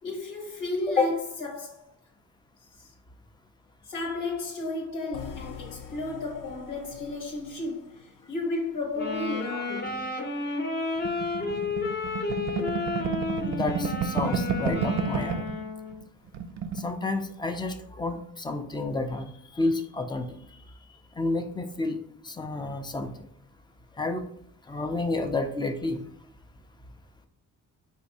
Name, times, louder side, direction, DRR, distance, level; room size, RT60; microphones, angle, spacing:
voice 1, 0.0-1.9 3.9-10.1, left 2 dB, 85° left, 1.3 m, -33 dB
sound 1, 5.1-9.2, left 7 dB, 70° left, 0.6 m, -46 dB
sound 2, 8.9-16.0, left 3 dB, 30° left, 0.7 m, -32 dB
sound 3, 11.0-15.6 15.9-16.0 16.3-16.9, right 6 dB, 60° right, 0.5 m, -30 dB
voice 2, 13.4-15.4 16.8-20.4 21.2-22.0 22.2-23.1 24.0-24.3 24.7-26.0, left 3 dB, 15° left, 0.4 m, -30 dB
4.4 x 2.6 x 4.0 m
cardioid pair, 130°, 33 cm